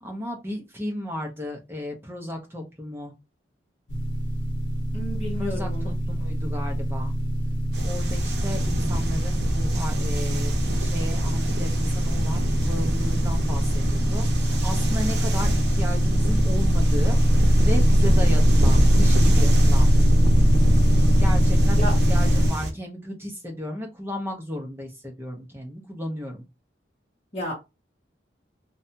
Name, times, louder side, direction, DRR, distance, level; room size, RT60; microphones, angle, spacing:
voice 1, 0.0-3.1 5.4-7.1 7.8-17.2 17.6-19.9 21.2-26.4, left 1 dB, 10° right, 0.6 m, -34 dB
sound 1, 3.9-22.5, equal, 85° left, 0.8 m, -21 dB
voice 2, 4.9-5.9 21.8-21.9 27.3-27.5, equal, 35° left, 0.8 m, -32 dB
sound 2, 7.7-22.7, right 1 dB, 65° right, 0.7 m, -29 dB
2.6 x 2.2 x 2.6 m
head